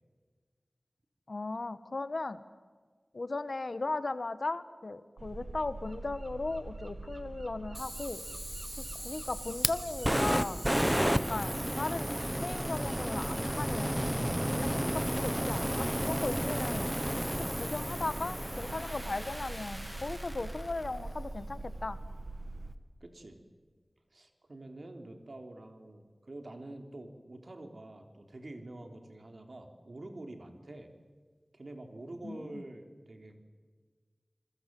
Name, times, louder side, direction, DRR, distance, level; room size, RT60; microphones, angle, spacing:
voice 1, 1.3-2.4 3.1-8.2 8.8-10.6 11.1-12.1 12.4-16.9 17.4-22.0 32.2-32.6, left 3 dB, 70° left, 13 dB, 1.3 m, -37 dB
sound 1, 5.2-22.7, right 2 dB, 85° right, 1.5 m, -44 dB
Fire, 7.7-20.9, equal, 10° right, 1.2 m, -33 dB
voice 2, 23.0-23.4 24.1-30.9 31.5-33.4, right 2 dB, 70° right, 5 dB, 3.5 m, -47 dB
28.5 x 21.5 x 7.7 m, 1.5 s
wide cardioid pair, 45°, 0 cm